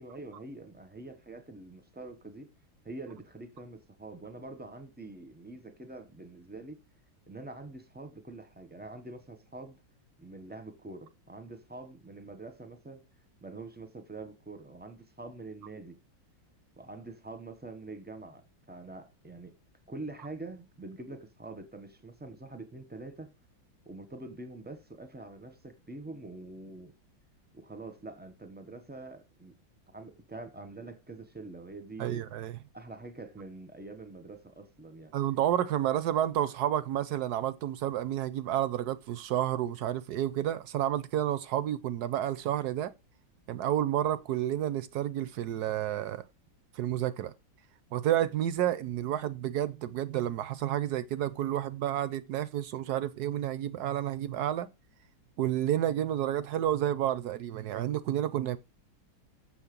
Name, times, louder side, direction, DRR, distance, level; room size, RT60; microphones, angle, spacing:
voice 1, 0.0-2.5 2.8-6.8 7.3-9.8 10.2-13.0 13.4-16.0 16.8-19.5 19.9-23.3 23.9-26.9 27.5-29.5 29.9-32.2 32.7-35.1, right 2 dB, 10° right, 0.5 m, -45 dB
voice 2, 32.0-32.6 35.1-42.9 43.5-46.2 46.7-47.3 47.9-54.7 55.4-58.6, right 11 dB, 70° right, 1.0 m, -30 dB
7.1 x 6.4 x 5.2 m
omnidirectional pair, 2.1 m